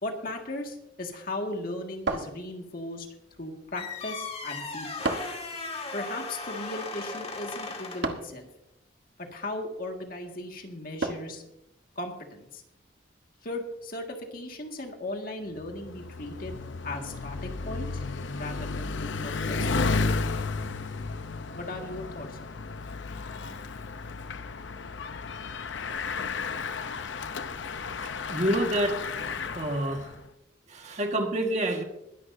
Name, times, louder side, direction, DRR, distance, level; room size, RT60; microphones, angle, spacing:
voice 1, 0.0-3.1 3.4-5.1 5.9-8.5 9.2-11.4 12.0-12.6 13.4-18.0 18.3-19.6 21.6-22.4 23.1-23.2, left 1 dB, 50° left, 3 dB, 1.9 m, -37 dB
sound 1, 2.1-2.9 5.0-5.5 8.0-8.4 11.0-11.4, right 3 dB, 75° right, 1.3 m, -32 dB
sound 2, 3.7-8.2, left 3 dB, 30° left, 1.9 m, -37 dB
Bicycle, 15.6-30.2, left 4 dB, 75° left, 0.7 m, -33 dB
voice 2, 28.0-29.0 29.5-30.1 30.7-31.8, right 1 dB, 35° right, 3 dB, 1.6 m, -28 dB
21.5 x 11.0 x 2.7 m, 0.84 s
head